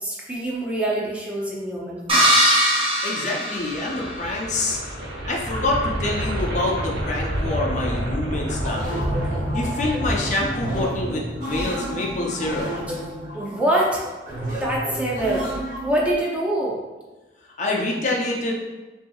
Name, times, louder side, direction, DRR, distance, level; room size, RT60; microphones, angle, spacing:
voice 1, 0.0-2.3 13.3-14.0 14.5-15.5 15.8-16.8, right 1 dB, 10° right, -4 dB, 0.5 m, -25 dB
sound 1, 2.1-4.3, equal, 30° right, 0.9 m, -20 dB
voice 2, 3.0-4.8 5.3-9.1 9.5-12.7 17.6-18.5, left 2 dB, 45° left, -2 dB, 0.6 m, -26 dB
sound 2, 3.6-11.6, equal, 85° right, 0.9 m, -28 dB
sound 3, 8.6-16.1, right 1 dB, 50° right, 1.4 m, -32 dB
5.5 x 2.8 x 2.4 m, 1.2 s
head